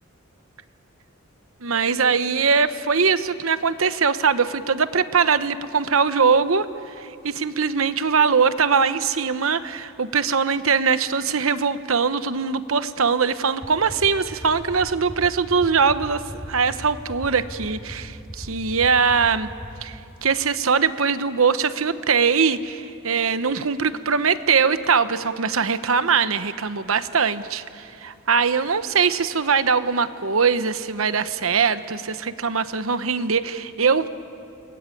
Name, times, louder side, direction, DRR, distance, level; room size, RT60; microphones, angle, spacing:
voice 1, 1.6-6.7 7.0-16.2 16.5-19.5 19.8-34.1, right 5 dB, 80° right, 12 dB, 1.0 m, -21 dB
sound 1, 13.6-19.7, equal, 25° left, 6.4 m, -35 dB
29.5 x 22.0 x 9.2 m, 2.6 s
head